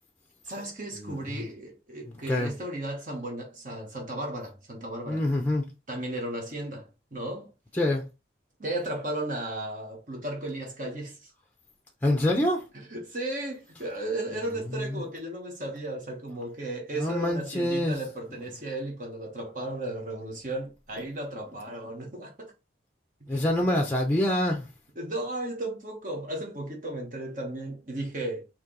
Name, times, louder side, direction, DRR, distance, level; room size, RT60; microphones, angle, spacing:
voice 1, 0.4-5.3 5.9-7.5 8.6-11.3 12.9-22.5 23.7-23.8 25.0-28.4, right 1 dB, 45° right, 1.1 m, -35 dB
voice 2, 1.0-1.5 2.1-2.5 5.1-5.7 7.7-8.0 12.0-12.7 14.7-15.0 17.0-18.0 23.3-24.7, left 1 dB, 10° left, 0.6 m, -26 dB
4.4 x 2.9 x 3.7 m
head